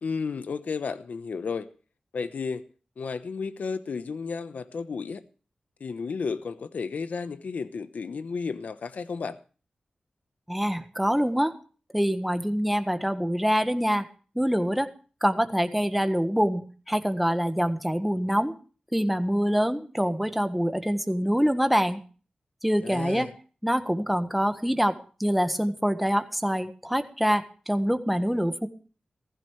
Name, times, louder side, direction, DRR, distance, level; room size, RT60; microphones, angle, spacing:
voice 1, 0.0-1.7 2.1-2.7 3.0-5.2 5.8-9.4 22.8-23.3, left 5 dB, 80° left, 1.0 m, -33 dB
voice 2, 10.5-11.6 11.9-14.0 14.3-14.9 15.2-18.5 18.9-22.0 22.6-23.3 23.6-28.7, equal, ahead, 1.4 m, -25 dB
16.0 x 15.0 x 3.2 m
wide cardioid pair, 70°, 3 cm